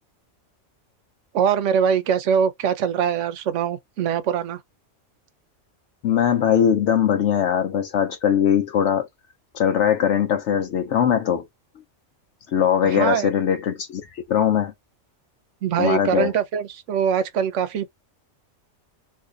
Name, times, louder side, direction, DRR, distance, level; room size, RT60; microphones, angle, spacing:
voice 1, 1.3-4.6 12.8-13.3 15.6-17.9, right 8 dB, 75° right, 1.0 m, -22 dB
voice 2, 6.0-9.1 9.5-11.5 12.5-14.7 15.8-16.3, left 9 dB, 75° left, 0.9 m, -21 dB
2.6 x 2.6 x 3.7 m
omnidirectional pair, 1.3 m